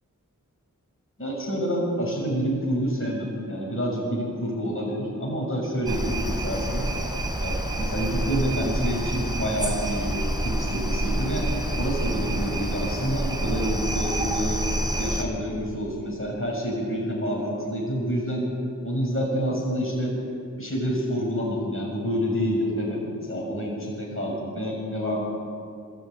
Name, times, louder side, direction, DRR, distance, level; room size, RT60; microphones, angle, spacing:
voice 1, 1.2-6.9 7.4-11.5 11.8-14.6 15.0-18.5 18.8-20.1 20.6-25.2, equal, 40° left, -3 dB, 6.7 m, -28 dB
sound 1, 5.9-15.2, right 1 dB, 10° right, 4.3 m, -28 dB
29.0 x 14.5 x 9.3 m, 2.4 s
wide cardioid pair, 50°, 33 cm